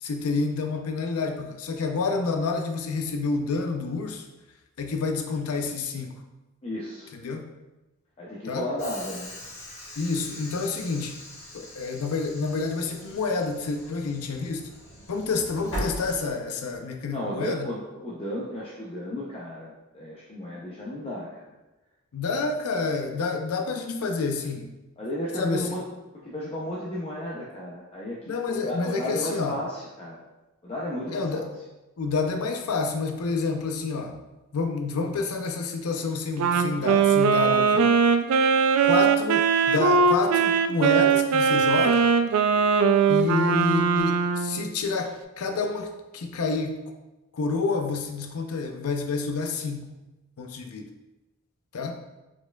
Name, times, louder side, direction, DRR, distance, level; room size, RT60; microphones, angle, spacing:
voice 1, 0.0-4.3 4.8-6.2 7.1-7.5 8.5-8.6 10.0-11.2 11.5-14.7 15.1-17.7 22.1-24.7 25.4-25.7 28.3-29.6 31.1-31.5 32.0-34.2 34.5-37.9 38.8-42.1 43.1-46.8 47.3-49.9 50.4-50.9 51.7-52.0, left 4 dB, 80° left, 4 dB, 0.5 m, -28 dB
voice 2, 6.6-7.1 8.2-9.3 17.1-21.5 25.0-25.8 26.1-30.2 30.6-31.5, left 1 dB, 25° left, -5 dB, 0.5 m, -33 dB
Train / Sliding door, 8.8-16.8, equal, 65° left, 1.3 m, -40 dB
Wind instrument woodwind instrument, 36.4-44.7, right 5 dB, 75° right, 0.3 m, -21 dB
4.6 x 4.3 x 2.3 m, 1.1 s
head